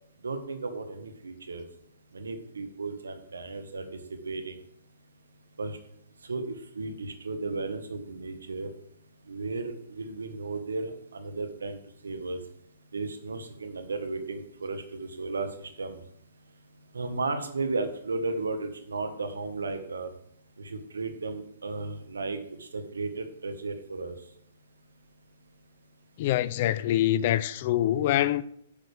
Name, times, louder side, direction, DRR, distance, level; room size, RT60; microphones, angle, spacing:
voice 1, 0.2-1.6 2.1-4.6 5.6-5.8 6.2-8.7 9.3-12.4 12.9-16.0 16.9-20.1 20.6-24.2, right 3 dB, 85° right, 1.4 m, -34 dB
voice 2, 26.2-28.4, left 13 dB, 45° left, 0.5 m, -25 dB
10.0 x 6.4 x 3.4 m
hypercardioid pair, 130°, 0 cm